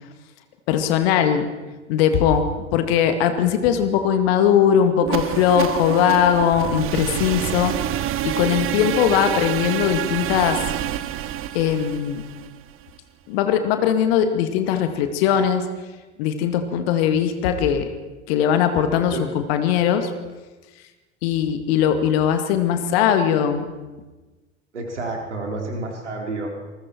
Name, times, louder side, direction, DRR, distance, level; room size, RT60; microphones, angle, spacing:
voice 1, 0.7-1.5 1.9-2.5 2.7-7.7 8.2-10.6 11.5-12.2 13.3-15.6 16.2-17.9 18.3-20.1 21.2-23.7, left 8 dB, 55° left, 8 dB, 2.2 m, -20 dB
sound 1, 5.0-13.0, right 12 dB, 35° right, 1.0 m, -27 dB
voice 2, 24.7-26.5, right 2 dB, 75° right, 2 dB, 3.9 m, -29 dB
27.0 x 21.0 x 4.5 m, 1.2 s
figure-of-eight pair, 70°, 35 cm